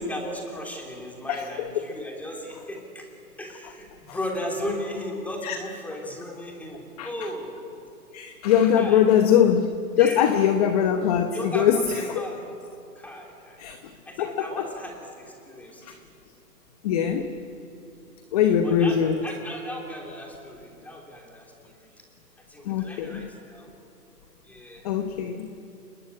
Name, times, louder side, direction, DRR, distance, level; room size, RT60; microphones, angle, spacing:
voice 1, 0.0-3.1 3.4-7.6 8.7-9.0 10.0-10.3 11.3-12.4 12.9-13.6 14.1-16.0 18.4-22.0 22.4-23.7 24.4-24.9, left 1 dB, 5° left, 0 dB, 3.1 m, -36 dB
voice 2, 1.3-1.7 4.1-4.2 5.4-5.6 7.0-7.1 8.1-9.7 10.0-12.3 13.6-13.9 14.2-14.7 15.8-15.9 16.8-17.3 18.3-19.3 22.6-23.3 24.8-25.5, left 9 dB, 25° left, 8 dB, 1.0 m, -22 dB
29.5 x 20.0 x 9.7 m, 2.7 s
hypercardioid pair, 150°, 49 cm